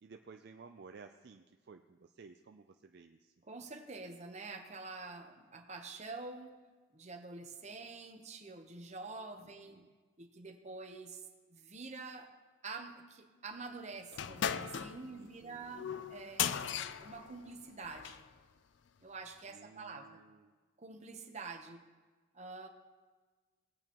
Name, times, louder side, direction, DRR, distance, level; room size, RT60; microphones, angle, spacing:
voice 1, 0.0-3.3 9.7-9.9 15.1-15.8 19.5-20.6, right 4 dB, 55° right, 6 dB, 0.4 m, -55 dB
voice 2, 3.5-6.5 6.9-9.8 10.2-11.2 11.5-12.3 12.6-18.2 19.0-20.2 20.8-21.8 22.3-22.7, right 3 dB, 35° right, 5 dB, 0.9 m, -47 dB
sound 1, 14.1-18.3, left 8 dB, 65° left, 0.4 m, -38 dB
18.0 x 8.8 x 3.0 m, 1.4 s
head